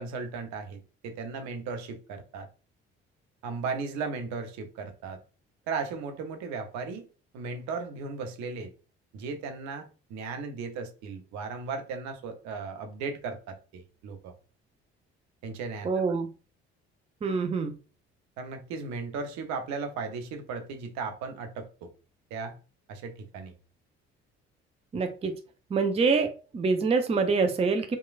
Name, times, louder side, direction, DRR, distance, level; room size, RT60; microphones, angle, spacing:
voice 1, 0.0-2.5 3.4-5.2 5.7-7.1 7.3-8.7 9.1-14.3 15.4-15.9 18.4-21.9 22.3-22.6 22.9-23.5, right 4 dB, 60° right, 0.6 m, -36 dB
voice 2, 15.8-16.3 17.2-17.7 24.9-25.3 25.7-28.0, right 4 dB, 20° right, 0.5 m, -25 dB
2.9 x 2.2 x 2.3 m
hypercardioid pair, 50°, 32 cm